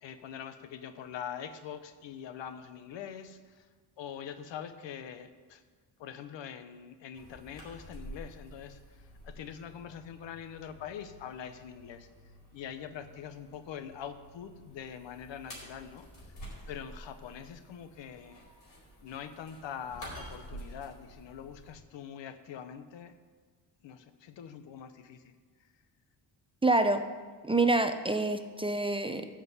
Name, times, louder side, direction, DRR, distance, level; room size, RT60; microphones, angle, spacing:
voice 1, 0.0-3.7 4.0-5.6 6.0-12.1 12.5-16.1 16.7-18.4 19.0-23.1 23.8-25.3, left 8 dB, 85° left, 10 dB, 1.0 m, -44 dB
sound 1, 7.1-21.8, equal, 45° left, 4.4 m, -50 dB
voice 2, 26.6-27.0 27.4-29.3, right 2 dB, 15° right, 8 dB, 0.5 m, -27 dB
13.5 x 5.2 x 8.1 m, 1.5 s
cardioid pair, 115°, 43 cm